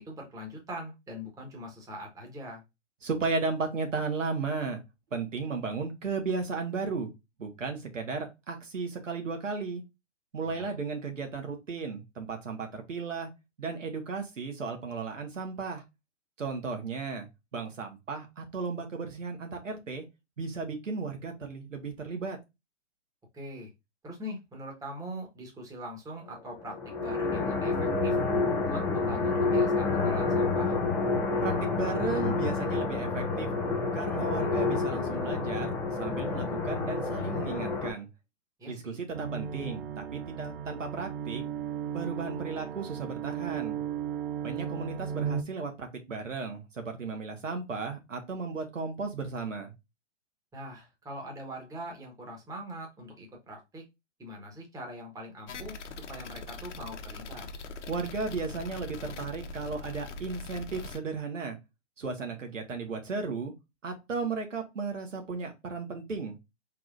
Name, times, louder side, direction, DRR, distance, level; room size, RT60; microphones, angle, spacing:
voice 1, 0.0-2.6 10.4-10.7 23.3-23.7 24.0-28.2 28.6-30.8 38.6-39.0 50.5-53.8 54.2-55.8 56.1-57.5, equal, 10° right, 0 dB, 1.3 m, -42 dB
voice 2, 3.0-4.8 5.1-7.1 7.4-9.8 10.3-13.3 13.6-15.8 16.4-17.3 17.5-20.0 20.4-22.4 31.4-33.5 33.9-35.7 36.0-38.1 38.7-41.4 41.9-43.8 44.4-49.7 57.9-61.6 62.0-63.5 63.8-66.3, right 4 dB, 80° right, 4 dB, 1.5 m, -35 dB
sound 1, 26.5-37.9, left 3 dB, 5° left, 0.5 m, -29 dB
sound 2, 39.1-45.4, right 8 dB, 50° right, 0.6 m, -35 dB
sound 3, 55.5-61.0, left 3 dB, 65° left, 1.0 m, -42 dB
4.7 x 3.8 x 2.5 m, 0.23 s
figure-of-eight pair, 120°, 38 cm